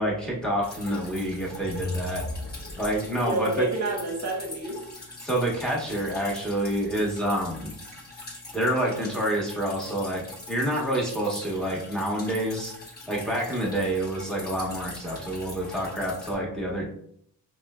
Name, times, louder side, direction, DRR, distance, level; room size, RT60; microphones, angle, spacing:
voice 1, 0.0-2.2 2.8-3.7 5.2-7.7 8.5-12.7 13.1-16.9, right 1 dB, ahead, -3 dB, 1.1 m, -28 dB
Drip, 0.6-16.3, left 2 dB, 20° left, 1.0 m, -43 dB
sound 1, 1.4-3.3, left 2 dB, 50° left, 0.5 m, -36 dB
voice 2, 3.2-4.8, right 2 dB, 40° right, 1 dB, 0.9 m, -28 dB
3.0 x 2.2 x 2.3 m, 0.66 s
cardioid pair, 60°, 42 cm